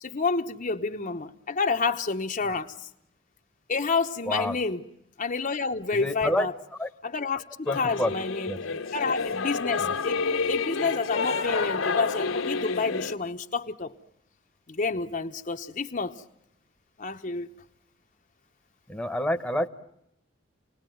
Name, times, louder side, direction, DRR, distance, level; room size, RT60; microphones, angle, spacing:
voice 1, 0.0-2.9 3.7-4.8 5.2-6.5 7.0-8.5 8.9-13.9 14.7-16.2 17.0-17.5, left 4 dB, 40° left, 1.0 m, -29 dB
voice 2, 4.2-4.6 5.9-6.5 6.8-6.9 7.7-8.1 8.5-8.6 9.8-9.9 18.9-19.7, left 1 dB, 5° left, 1.2 m, -28 dB
Singing / Musical instrument, 7.7-13.1, left 4 dB, 85° left, 1.6 m, -29 dB
29.0 x 19.5 x 9.3 m
head